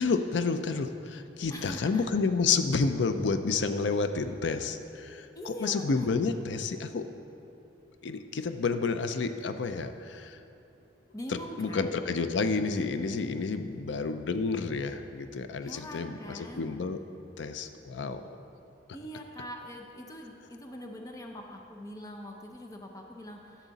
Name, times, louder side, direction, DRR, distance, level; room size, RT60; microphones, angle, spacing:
voice 1, 0.0-7.1 8.0-10.4 11.3-17.0 17.4-18.2, left 4 dB, 75° left, 9 dB, 0.5 m, -30 dB
voice 2, 1.5-2.1 5.3-6.3 11.1-11.9 15.6-16.7 18.9-23.7, equal, 20° left, 2 dB, 0.6 m, -43 dB
12.0 x 7.3 x 4.0 m, 2.8 s
head